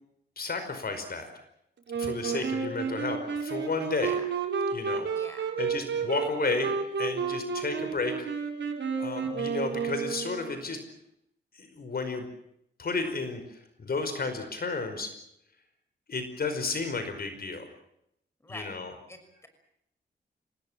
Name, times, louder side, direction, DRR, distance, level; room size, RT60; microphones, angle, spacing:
voice 1, 0.4-1.3 2.0-4.1 4.7-5.1 5.6-6.7 7.0-8.3 9.0-10.8 11.5-12.3 12.8-15.1 16.1-17.7 18.5-18.9, left 4 dB, 55° left, 8 dB, 5.1 m, -32 dB
Wind instrument woodwind instrument, 1.9-10.6, right 6 dB, 90° right, 4.8 m, -31 dB
voice 2, 5.1-5.5 7.8-8.0 18.4-18.8 19.1-19.5, left 1 dB, 15° left, 7 dB, 6.1 m, -46 dB
27.5 x 19.5 x 7.5 m, 0.76 s
wide cardioid pair, 100°, 19 cm